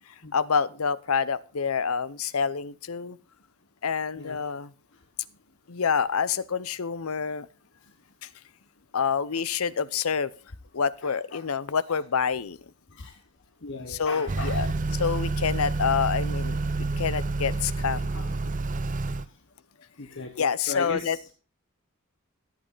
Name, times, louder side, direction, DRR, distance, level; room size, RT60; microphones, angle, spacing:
voice 1, 0.3-3.2 3.8-4.7 5.7-7.5 8.2-8.3 8.9-10.3 10.7-12.6 13.9-16.6 17.0-18.1 20.4-21.2, left 6 dB, 80° left, 18 dB, 0.7 m, -27 dB
voice 2, 11.0-11.5 11.9-12.0 12.9-13.2 13.6-14.7 16.9-17.0 18.1-18.3 20.0-21.2, left 3 dB, 60° left, 5 dB, 1.3 m, -38 dB
Motor vehicle (road) / Accelerating revving vroom, 14.3-19.2, right 3 dB, 40° right, 0.6 m, -28 dB
14.0 x 8.9 x 4.0 m, 0.36 s
head